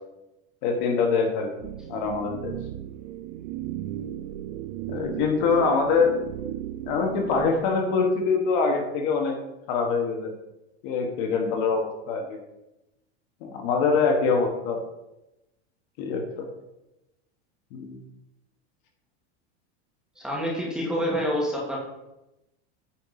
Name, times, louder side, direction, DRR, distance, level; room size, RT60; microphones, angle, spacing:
voice 1, 0.6-2.6 4.9-6.1 6.9-9.4 9.7-10.3 10.8-12.4 13.4-14.8 16.0-16.4 17.7-18.0, left 5 dB, 45° left, 2 dB, 1.4 m, -24 dB
sound 1, 1.6-7.5, right 12 dB, 50° right, 0.5 m, -35 dB
voice 2, 20.2-21.8, equal, ahead, -4 dB, 1.8 m, -27 dB
8.8 x 4.5 x 5.8 m, 0.94 s
supercardioid pair, 170°, 33 cm